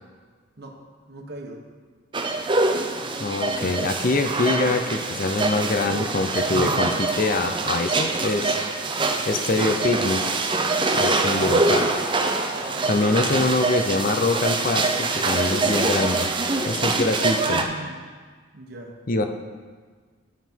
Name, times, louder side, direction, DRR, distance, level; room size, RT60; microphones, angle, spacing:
voice 1, 1.1-1.6 5.1-5.3 5.8-6.1 8.9-9.2 11.4-11.8 12.6-13.1 17.3-18.0 18.5-19.0, right 1 dB, 55° right, 1 dB, 1.1 m, -39 dB
sound 1, 2.1-17.6, right 3 dB, 25° right, 0.6 m, -24 dB
voice 2, 3.2-8.6 9.3-10.2 10.9-11.8 12.9-16.3 16.7-17.6 19.1-19.2, left 2 dB, 45° left, 7 dB, 0.6 m, -24 dB
11.5 x 5.7 x 4.6 m, 1.5 s
head